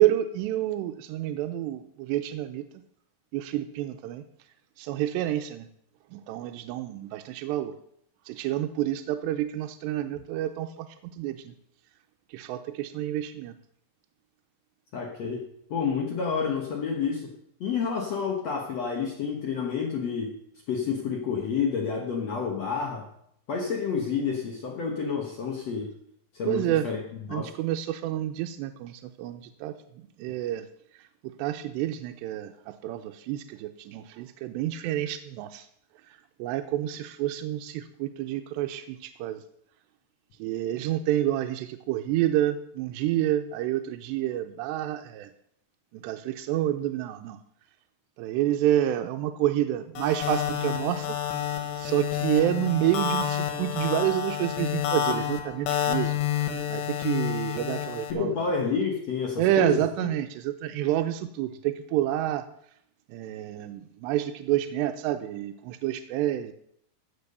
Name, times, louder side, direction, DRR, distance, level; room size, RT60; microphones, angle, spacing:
voice 1, 0.0-2.6 3.3-4.2 4.8-5.7 6.1-7.7 8.3-11.5 12.3-13.6 26.5-26.9 27.3-29.7 30.2-30.7 31.4-35.7 36.1-39.4 40.4-45.3 45.9-47.4 48.2-51.2 51.8-58.4 59.4-62.4 63.1-66.5, right 13 dB, 90° right, 7 dB, 2.8 m, -28 dB
voice 2, 14.9-15.4 15.7-17.3 17.6-20.3 20.7-23.1 23.5-25.9 26.3-27.0 27.3-27.5 58.1-60.1, left 6 dB, 65° left, 0 dB, 1.7 m, -29 dB
sound 1, 50.0-58.1, left 9 dB, 90° left, 3.6 m, -29 dB
15.0 x 6.1 x 6.7 m, 0.70 s
omnidirectional pair, 4.8 m